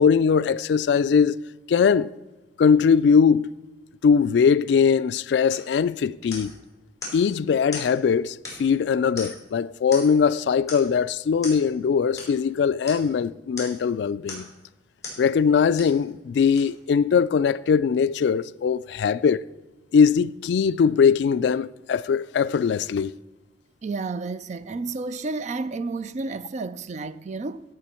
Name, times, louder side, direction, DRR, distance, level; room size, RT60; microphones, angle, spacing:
voice 1, 0.0-1.4 1.7-2.1 2.6-3.5 4.0-6.5 7.1-14.5 15.2-19.4 19.9-23.1, left 6 dB, 70° left, 0.3 m, -21 dB
sound 1, 5.5-5.7 6.3-6.6 7.0-7.2 7.7-7.9 8.4-8.8 9.2-9.5 9.9-10.2 10.7-10.9 11.4-11.6 12.2-12.3 12.9-13.1 13.6-13.8 14.3-14.6 15.0-15.2 15.8-16.0 16.6-16.7, left 3 dB, 20° left, 4.4 m, -38 dB
voice 2, 23.8-27.6, right 3 dB, 40° right, 0.4 m, -31 dB
16.5 x 6.9 x 4.3 m
head